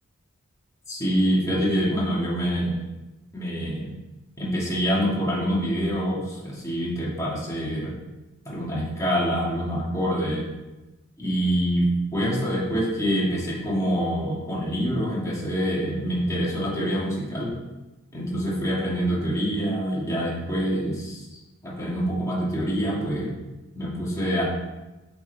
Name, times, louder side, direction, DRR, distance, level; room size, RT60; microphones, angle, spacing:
voice 1, 0.9-2.8 3.3-3.9 4.4-7.9 8.5-10.5 11.2-17.5 18.1-21.3 21.6-23.3 23.8-24.4, equal, 15° left, -6 dB, 2.0 m, -26 dB
8.3 x 5.1 x 3.4 m, 1.1 s
head